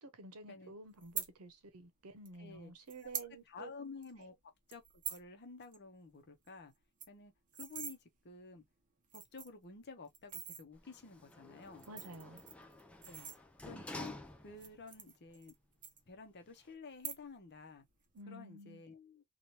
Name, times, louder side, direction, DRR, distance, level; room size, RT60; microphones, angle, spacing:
voice 1, 0.0-3.7 11.9-12.4 18.1-18.8, right 2 dB, 85° right, 0.8 m, -51 dB
sound 1, 1.0-1.3 2.3-2.4 2.9-3.3 3.7-3.8 4.0-4.2 4.7-5.3 5.6-5.8 6.1-6.2 6.5-6.6 6.8-8.0 8.6-8.7 9.0-9.6 10.1-10.6 11.6-13.8 14.5-15.6 15.8-16.5 16.9-17.5 17.8-18.2, right 7 dB, 35° right, 0.8 m, -44 dB
voice 2, 2.4-2.7 3.0-3.1 3.5-4.3 4.7-6.7 7.1-7.3 7.6-8.6 9.1-11.9 13.0-13.3 13.6-14.1 14.4-15.5 16.1-17.8 18.3-19.2, left 4 dB, 50° left, 0.8 m, -52 dB
Sliding door, 10.7-14.9 15.3-15.4, left 1 dB, 5° left, 0.4 m, -50 dB
3.1 x 2.4 x 2.7 m
head